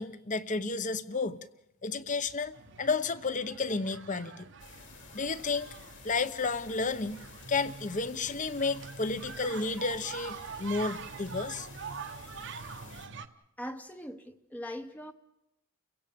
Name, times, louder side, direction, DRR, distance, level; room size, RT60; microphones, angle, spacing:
voice 1, 0.0-1.4 1.8-2.5 2.8-4.5 5.1-5.8 6.0-7.2 7.5-11.7, left 4 dB, 35° left, 14 dB, 0.9 m, -32 dB
sound 1, 2.5-13.3, right 5 dB, 55° right, 1.0 m, -45 dB
sound 2, 4.6-13.1, left 4 dB, 55° left, 3.4 m, -52 dB
voice 2, 13.6-15.1, equal, 5° left, 7 dB, 0.8 m, -41 dB
30.0 x 16.5 x 7.0 m, 0.87 s
head